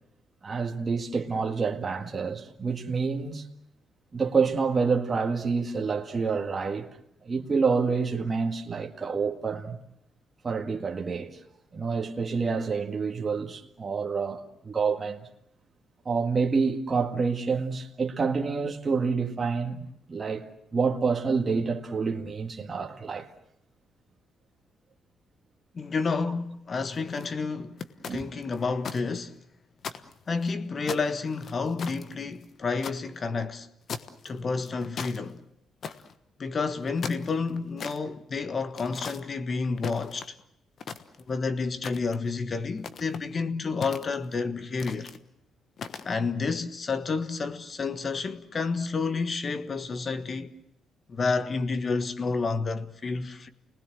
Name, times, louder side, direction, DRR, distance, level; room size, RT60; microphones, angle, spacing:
voice 1, 0.4-3.5 4.1-6.9 7.2-9.8 10.4-11.4 11.7-15.3 16.1-23.3 28.1-28.2, right 5 dB, 35° right, 1.9 m, -28 dB
voice 2, 25.7-27.8 28.1-29.3 29.9-33.7 34.2-35.4 36.4-40.4 41.3-45.1 46.0-50.5 51.1-53.5, left 4 dB, 40° left, 1.4 m, -30 dB
sound 1, 26.9-27.3 27.8-29.0 29.3-29.4 29.8-30.5 30.9-33.0 33.9-34.3 34.6-35.2 35.8-36.1 36.8-38.0 38.8-39.2 39.8-40.4 40.8-41.4 41.8-42.3 42.8-43.2 43.8-44.4 44.8-45.2 45.8-46.1, left 6 dB, 55° left, 1.3 m, -38 dB
29.5 x 19.5 x 7.8 m
cardioid pair, 90°, 0 cm